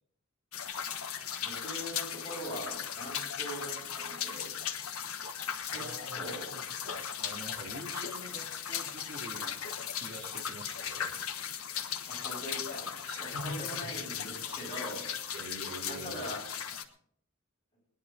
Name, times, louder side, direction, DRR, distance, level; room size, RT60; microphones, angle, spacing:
sound 1, 0.5-16.8, left 8 dB, 85° left, 1.3 m, -37 dB
voice 1, 1.4-4.5 5.7-5.9 6.1-6.4 12.1-12.9 13.2-15.1 15.8-16.4, equal, 25° left, -3 dB, 7.6 m, -42 dB
voice 2, 5.7-11.2 13.1-13.9 15.3-16.3, equal, 45° right, 1 dB, 2.5 m, -45 dB
20.5 x 10.5 x 3.9 m, 0.65 s
head